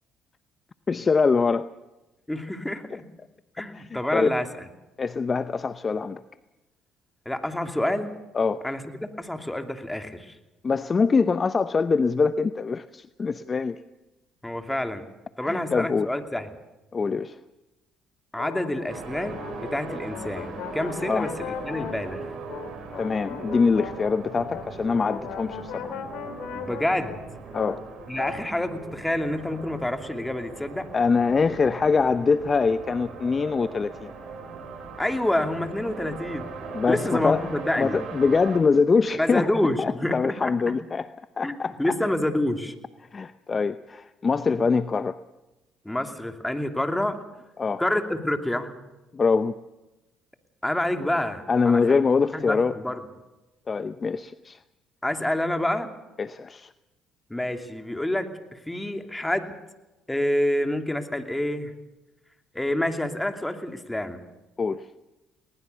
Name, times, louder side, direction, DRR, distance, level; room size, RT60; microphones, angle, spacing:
voice 1, 0.9-1.7 3.7-4.3 5.0-6.2 8.3-8.6 10.6-13.8 15.4-16.1 16.9-17.4 21.1-21.3 23.0-26.0 27.5-27.8 30.9-34.1 36.7-37.5 37.8-39.5 39.8-41.1 41.4-41.7 43.1-45.2 47.6-47.8 49.1-49.5 51.5-52.7 53.7-54.6 56.2-56.7 64.6-64.9, left 4 dB, 35° left, 13 dB, 0.8 m, -24 dB
voice 2, 2.3-3.0 3.6-4.5 7.2-8.1 8.6-10.3 14.4-15.0 15.4-16.5 18.3-22.3 26.5-27.2 28.1-30.9 35.0-36.5 36.9-38.0 39.1-40.5 41.4-42.7 45.8-47.2 47.8-48.7 50.6-52.0 52.3-53.0 55.0-55.9 57.3-59.5 60.1-61.7 62.5-64.2, left 1 dB, 10° left, 6 dB, 2.7 m, -28 dB
sound 1, 18.4-28.5, left 8 dB, 75° left, 2.7 m, -38 dB
sound 2, 18.9-38.6, right 4 dB, 55° right, 6.1 m, -40 dB
21.0 x 19.5 x 6.9 m, 1.0 s
hypercardioid pair, 65°, 0 cm